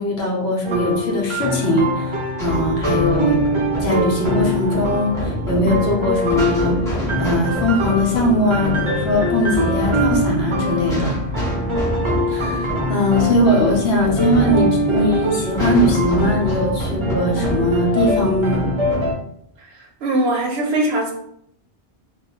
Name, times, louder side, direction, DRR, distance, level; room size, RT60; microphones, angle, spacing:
voice 1, 0.0-2.1 2.4-3.4 3.8-11.2 12.3-18.7, left 1 dB, 70° left, -1 dB, 0.9 m, -20 dB
sound 1, 0.6-19.1, equal, 50° right, 0.3 m, -23 dB
sound 2, 2.4-19.1, equal, 5° left, 0.9 m, -27 dB
voice 2, 19.6-21.1, right 1 dB, 80° right, 0 dB, 0.8 m, -21 dB
2.3 x 2.1 x 2.8 m, 0.71 s
omnidirectional pair, 1.1 m